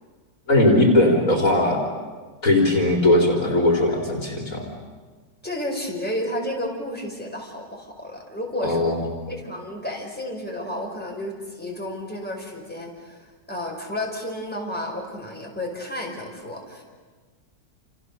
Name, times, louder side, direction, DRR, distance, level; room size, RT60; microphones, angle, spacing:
voice 1, 0.5-1.8 2.4-4.7 8.6-9.1, left 1 dB, 50° left, 0 dB, 3.9 m, -19 dB
voice 2, 5.4-9.0 9.3-16.8, left 1 dB, 5° left, -1 dB, 5.3 m, -32 dB
29.5 x 29.0 x 6.9 m, 1.4 s
omnidirectional pair, 1.9 m